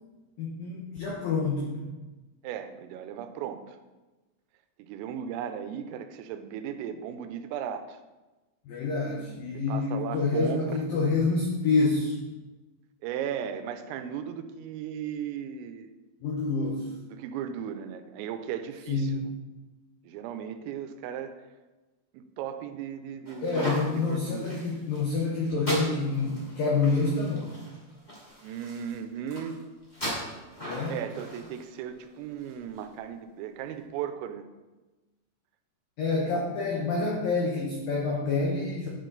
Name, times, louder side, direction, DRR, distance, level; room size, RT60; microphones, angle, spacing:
voice 1, 0.4-1.9 8.7-12.1 16.2-16.9 18.9-19.2 23.4-27.6 30.6-31.0 36.0-38.9, left 3 dB, 85° left, -2 dB, 2.0 m, -27 dB
voice 2, 2.4-3.8 4.8-8.0 9.7-10.9 13.0-15.9 17.1-19.3 20.0-21.4 22.1-24.6 28.4-29.6 30.9-34.5, right 9 dB, 90° right, 9 dB, 3.3 m, -36 dB
sound 1, 23.2-32.8, equal, 20° left, 1.1 m, -39 dB
10.5 x 6.5 x 4.0 m, 1.2 s
omnidirectional pair, 5.8 m